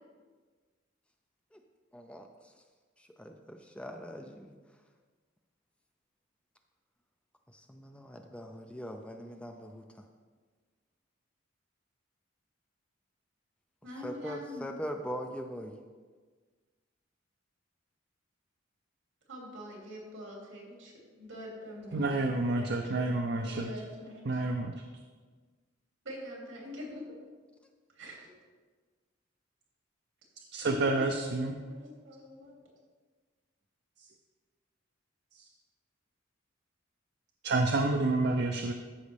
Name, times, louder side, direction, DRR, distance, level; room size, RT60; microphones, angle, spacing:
voice 1, 1.9-2.3 3.0-4.5 7.5-9.8 14.0-15.7, equal, 5° left, 4 dB, 0.4 m, -41 dB
voice 2, 13.8-14.7 19.3-22.3 22.6-24.4 26.0-27.1 27.9-28.3 30.6-32.6, left 1 dB, 75° right, -2 dB, 2.8 m, -44 dB
voice 3, 21.9-23.7 24.3-24.7 30.5-31.6 37.4-38.7, right 2 dB, 55° right, 4 dB, 0.5 m, -29 dB
13.0 x 5.3 x 3.4 m, 1.4 s
head